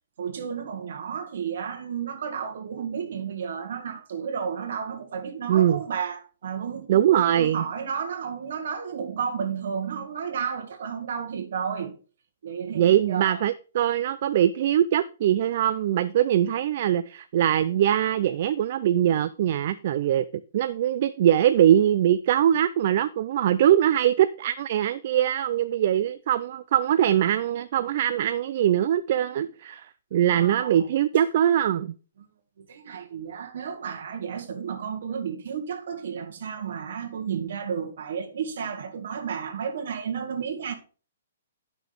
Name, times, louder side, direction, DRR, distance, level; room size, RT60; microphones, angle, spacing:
voice 1, 0.2-11.9 12.4-13.4 30.3-30.9 32.6-40.7, right 7 dB, 55° right, 1.8 m, -32 dB
voice 2, 5.5-5.8 6.9-7.6 12.7-20.2 20.5-31.9, right 11 dB, 40° right, 0.3 m, -22 dB
10.5 x 5.9 x 3.4 m
hypercardioid pair, 175°, 0 cm